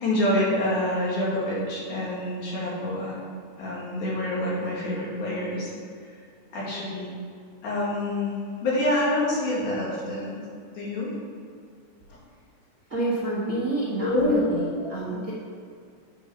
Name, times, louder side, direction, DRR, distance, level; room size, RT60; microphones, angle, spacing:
voice 1, 0.0-3.2 3.6-5.7 6.5-7.1 7.6-10.4 10.7-11.1 14.0-14.9, left 1 dB, 80° left, -6 dB, 3.7 m, -26 dB
voice 2, 12.9-15.3, right 2 dB, 40° right, -9 dB, 1.1 m, -28 dB
8.7 x 5.2 x 5.7 m, 2.3 s
omnidirectional pair, 3.5 m